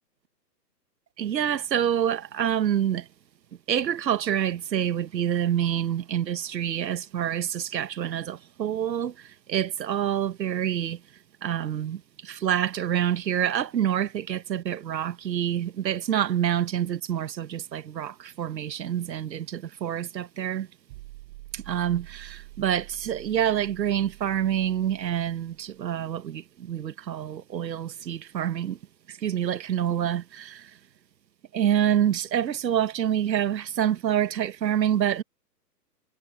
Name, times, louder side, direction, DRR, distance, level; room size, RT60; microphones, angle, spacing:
voice 1, 1.2-3.1 3.7-11.0 11.4-20.7 21.5-28.8 29.1-30.8 31.5-35.2, right 10 dB, 90° right, 1.1 m, -27 dB
sound 1, 20.9-25.9, right 20 dB, 25° right, 5.9 m, -47 dB
hypercardioid pair, 170°, 50 cm